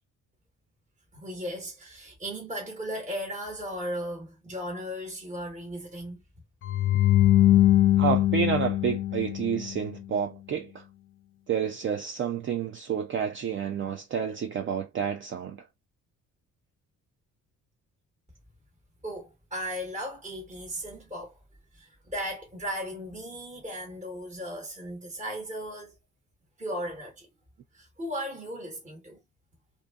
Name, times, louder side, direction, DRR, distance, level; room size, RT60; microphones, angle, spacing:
voice 1, 1.1-6.2 19.0-21.4 21.7-26.0 26.6-27.3 27.7-29.2, equal, 25° right, 1.2 m, -36 dB
sound 1, 6.6-9.8, left 13 dB, 45° left, 0.5 m, -22 dB
voice 2, 8.0-10.8 11.5-15.6, right 7 dB, 40° right, 0.4 m, -29 dB
2.6 x 2.6 x 2.2 m
cardioid pair, 90°, 30 cm